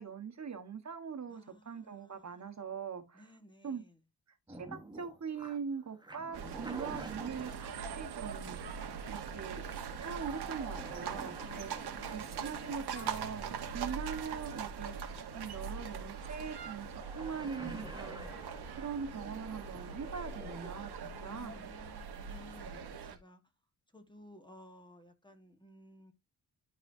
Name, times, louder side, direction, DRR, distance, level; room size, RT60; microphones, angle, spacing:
voice 1, 0.0-3.2 3.6-3.8 4.5-9.6 10.0-16.9 17.1-18.5 18.8-21.7, right 6 dB, 45° right, 1.4 m, -42 dB
voice 2, 1.3-2.7 3.1-4.0 11.5-12.7 13.7-13.9 21.1-23.4 23.9-26.1, left 1 dB, 10° left, 1.4 m, -57 dB
sound 1, 4.5-23.2, right 1 dB, 10° right, 1.1 m, -51 dB
sound 2, 6.3-23.2, right 6 dB, 80° right, 1.4 m, -42 dB
Marimba xylophone / Wood, 13.0-15.8, left 8 dB, 60° left, 1.0 m, -57 dB
12.0 x 4.1 x 2.7 m
wide cardioid pair, 110°, 38 cm